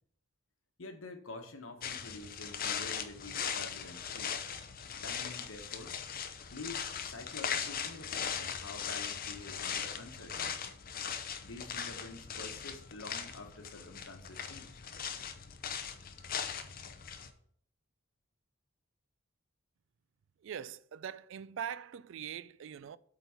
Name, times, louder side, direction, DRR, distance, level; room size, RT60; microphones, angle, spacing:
voice 1, 0.8-4.4 5.0-6.0 6.5-10.7 11.4-14.8, left 2 dB, 75° left, 1.2 m, -48 dB
sound 1, 1.8-17.3, left 7 dB, 45° left, 0.6 m, -39 dB
voice 2, 20.4-23.0, right 8 dB, 65° right, 0.3 m, -42 dB
8.3 x 4.1 x 5.6 m
head